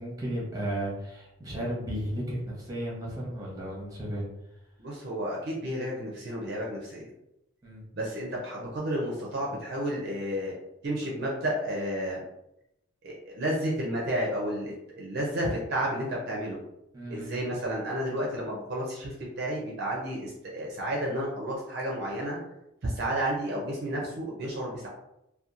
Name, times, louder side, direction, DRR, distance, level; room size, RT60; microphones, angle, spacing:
voice 1, 0.0-4.2 7.6-7.8 16.9-17.3, right 1 dB, 15° right, -5 dB, 0.7 m, -34 dB
voice 2, 4.8-7.1 7.9-10.5 10.8-12.2 13.0-16.6 17.1-22.4 22.8-24.9, right 1 dB, 50° right, -3 dB, 0.5 m, -31 dB
2.8 x 2.2 x 2.4 m, 0.87 s
head